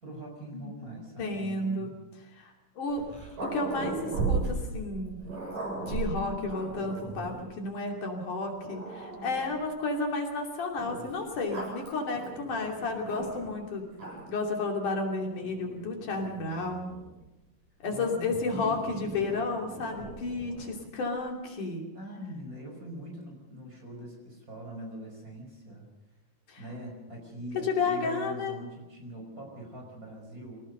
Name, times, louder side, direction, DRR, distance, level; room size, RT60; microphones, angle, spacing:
voice 1, 0.0-1.9 17.9-19.2 21.9-25.9 26.6-30.6, right 1 dB, 25° right, 1 dB, 5.8 m, -43 dB
voice 2, 1.2-1.9 2.4-3.1 3.4-5.2 5.8-13.9 14.3-16.9 17.8-21.8 26.5-26.6 27.6-28.6, left 3 dB, 70° left, 1 dB, 4.3 m, -32 dB
Growling, 2.9-7.5 8.2-8.3 8.6-9.7 10.8-13.6 13.9-14.5 15.3-17.2 18.3-20.8, right 4 dB, 80° right, 9.9 m, -37 dB
25.0 x 18.0 x 6.7 m, 1.0 s
omnidirectional pair, 3.8 m